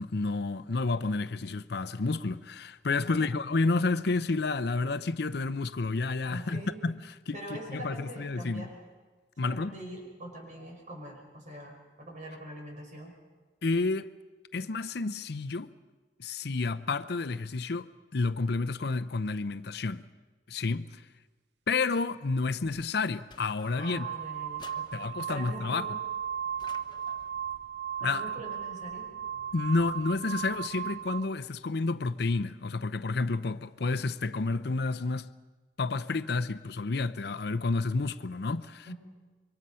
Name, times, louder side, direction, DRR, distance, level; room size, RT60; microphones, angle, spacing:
voice 1, 0.0-8.7 9.4-9.7 13.6-14.1 14.5-15.7 16.2-20.1 20.5-21.0 21.7-24.1 24.9-25.9 28.0-28.2 29.5-35.3 35.8-38.9, left 3 dB, 65° left, 0.7 m, -30 dB
voice 2, 6.3-6.8 7.3-8.8 9.4-13.1 23.8-26.0 28.0-29.6 38.9-39.0, right 1 dB, 45° right, 5.4 m, -43 dB
sound 1, 23.3-24.1 24.6-25.5 26.6-27.4, left 4 dB, 25° left, 1.0 m, -54 dB
sound 2, 23.6-31.3, right 9 dB, 70° right, 0.7 m, -36 dB
26.0 x 23.5 x 5.6 m
head